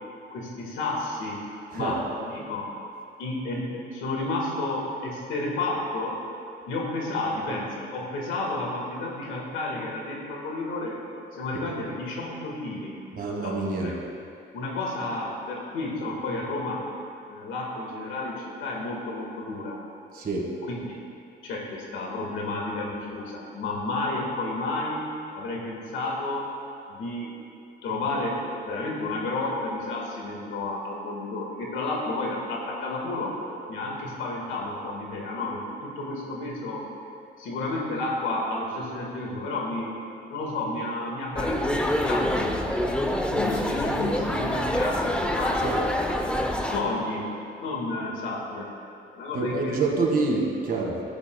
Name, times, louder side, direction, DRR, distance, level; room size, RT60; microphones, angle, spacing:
voice 1, 0.3-1.4 1.7-2.7 3.2-6.2 6.7-11.0 11.3-13.0 13.4-13.9 14.5-16.9 17.3-19.8 20.7-21.0 21.4-25.0 25.3-26.5 26.9-27.3 27.8-33.4 33.7-36.9 37.4-40.0 40.3-42.6 43.3-45.6 46.7-47.3 47.6-48.7 49.1-49.9, left 2 dB, 85° left, -2 dB, 1.8 m, -31 dB
voice 2, 13.1-14.0 20.1-20.6 45.6-45.8 49.3-51.0, right 3 dB, 50° right, -1 dB, 1.9 m, -27 dB
sound 1, 41.4-46.8, left 1 dB, 5° left, 0.7 m, -26 dB
14.0 x 8.3 x 2.3 m, 2.5 s
cardioid pair, 90°, 20 cm